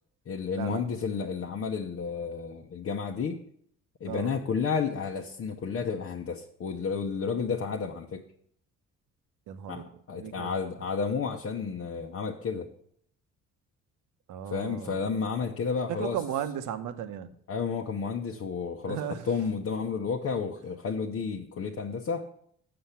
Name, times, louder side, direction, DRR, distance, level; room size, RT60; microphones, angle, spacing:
voice 1, 0.3-3.4 4.0-8.2 9.7-12.7 14.5-16.2 17.5-19.0 19.3-22.3, left 5 dB, 50° left, 1 dB, 0.9 m, -31 dB
voice 2, 9.5-10.5 14.3-15.0 15.9-17.3 18.9-19.3, right 9 dB, 75° right, 9 dB, 0.9 m, -35 dB
7.7 x 6.9 x 5.7 m, 0.66 s
supercardioid pair, 70°, 31 cm